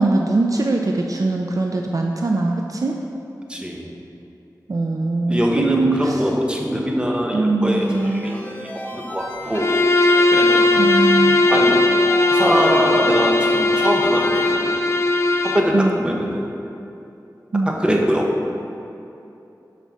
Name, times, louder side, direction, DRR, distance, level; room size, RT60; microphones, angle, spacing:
voice 1, 0.0-3.0 4.7-6.2 7.3-8.4 10.7-11.5 15.7-16.0 17.5-17.8, right 2 dB, 50° right, 2 dB, 0.5 m, -21 dB
voice 2, 3.5-3.9 5.3-9.7 10.3-10.6 11.5-11.8 12.3-14.8 15.4-16.5 17.7-18.3, equal, 15° right, -1 dB, 1.1 m, -22 dB
sound 1, 7.7-14.5, equal, 20° left, 1.0 m, -34 dB
Bowed string instrument, 9.5-15.7, left 2 dB, 40° left, 0.6 m, -18 dB
9.1 x 4.2 x 6.2 m, 2.8 s
wide cardioid pair, 85°, 7 cm